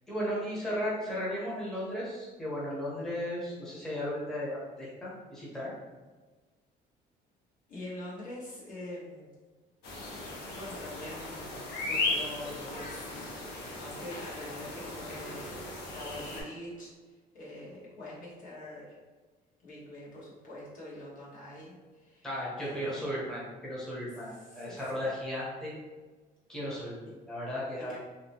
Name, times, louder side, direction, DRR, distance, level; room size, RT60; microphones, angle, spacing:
voice 1, 0.1-5.7 22.2-25.7 26.5-28.0, equal, 5° left, -7 dB, 0.8 m, -35 dB
voice 2, 7.7-9.3 10.5-11.5 11.8-13.1 13.7-18.8 19.6-22.3 22.6-23.1 24.2-25.1 27.8-28.0, left 1 dB, 55° left, -7 dB, 1.2 m, -44 dB
sound 1, 9.8-16.4, left 2 dB, 75° left, 0.7 m, -37 dB
2.8 x 2.1 x 2.9 m, 1.3 s
cardioid pair, 110°, 17 cm